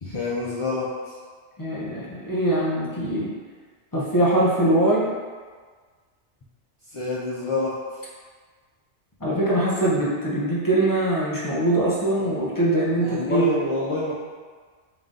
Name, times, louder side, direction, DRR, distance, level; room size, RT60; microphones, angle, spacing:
voice 1, 0.0-0.9 6.9-7.7 12.2-12.3 13.0-14.1, left 3 dB, 50° left, -7 dB, 0.3 m, -27 dB
voice 2, 1.6-3.3 3.9-5.1 9.2-13.5, right 1 dB, 20° left, -7 dB, 0.6 m, -22 dB
3.8 x 2.7 x 3.6 m, 1.5 s
omnidirectional pair, 1.2 m